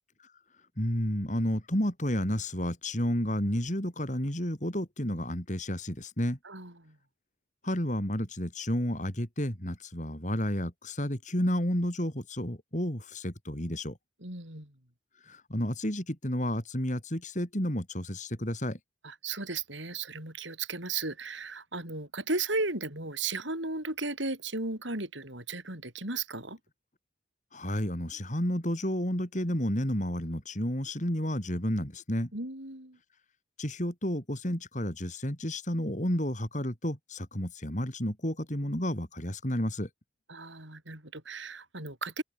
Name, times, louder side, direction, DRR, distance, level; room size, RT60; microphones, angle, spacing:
voice 1, 0.8-6.4 7.6-14.0 15.2-18.8 27.5-32.3 33.6-39.9, equal, 40° left, 4.5 m, -31 dB
voice 2, 6.4-7.0 14.2-14.7 19.0-26.6 32.3-33.0 40.3-42.2, right 3 dB, 70° right, 8.0 m, -35 dB
open air
head